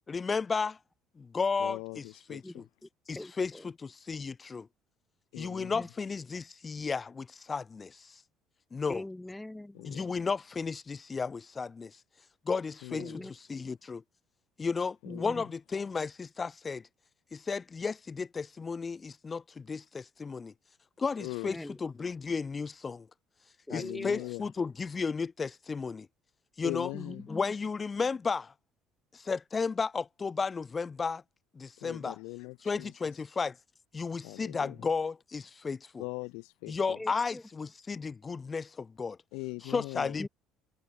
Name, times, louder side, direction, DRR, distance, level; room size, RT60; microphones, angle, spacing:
voice 1, 0.1-0.8 1.2-2.0 2.3-2.7 3.1-4.7 5.4-8.1 8.7-9.0 9.9-11.9 12.5-13.1 13.5-14.0 14.6-16.8 17.3-20.5 21.0-23.1 23.7-26.1 26.6-26.9 27.3-28.5 29.1-31.2 31.6-32.2 32.6-33.6 33.9-36.0 36.7-39.2 39.7-40.3, left 5 dB, 25° left, 0.5 m, -33 dB
voice 2, 1.6-2.6 5.3-5.8 9.7-10.1 12.8-13.3 15.0-15.4 21.2-21.5 23.7-24.5 26.6-27.3 31.8-33.2 34.2-34.9 36.0-37.0 39.3-40.2, left 32 dB, 60° left, 0.9 m, -41 dB
voice 3, 3.2-3.7 5.7-5.9 8.9-10.1 12.9-13.3 15.1-15.4 21.5-21.8 23.7-24.3 26.9-27.5 37.0-37.4 40.2-40.3, left 1 dB, 10° left, 1.8 m, -42 dB
figure-of-eight pair, 55°, 0 cm